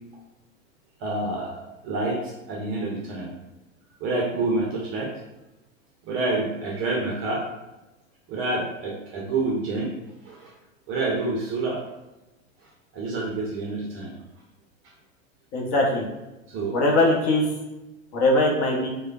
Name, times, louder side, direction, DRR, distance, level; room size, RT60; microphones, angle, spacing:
voice 1, 1.0-3.3 4.0-5.1 6.0-7.4 8.3-9.9 10.2-10.5 10.9-11.8 12.9-14.1 16.5-16.8, right 2 dB, 35° right, -3 dB, 0.5 m, -28 dB
voice 2, 15.5-16.0 16.7-17.5 18.1-18.9, left 2 dB, 40° left, -1 dB, 0.8 m, -21 dB
3.1 x 2.1 x 2.3 m, 1.0 s
hypercardioid pair, 95°, 39 cm